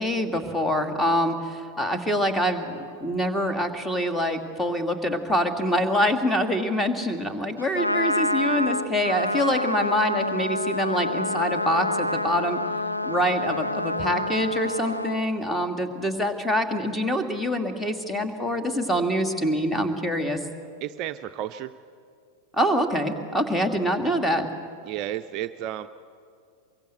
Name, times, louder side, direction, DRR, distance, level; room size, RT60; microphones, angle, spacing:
voice 1, 0.0-12.6 13.0-20.4 22.5-24.5, equal, 5° left, 7 dB, 2.3 m, -25 dB
Trumpet, 7.6-15.2, left 1 dB, 90° left, 0.9 m, -27 dB
voice 2, 20.8-21.7 24.8-25.9, right 12 dB, 40° right, 10 dB, 0.6 m, -32 dB
24.0 x 23.0 x 8.0 m, 2.3 s
figure-of-eight pair, 90°, 0 cm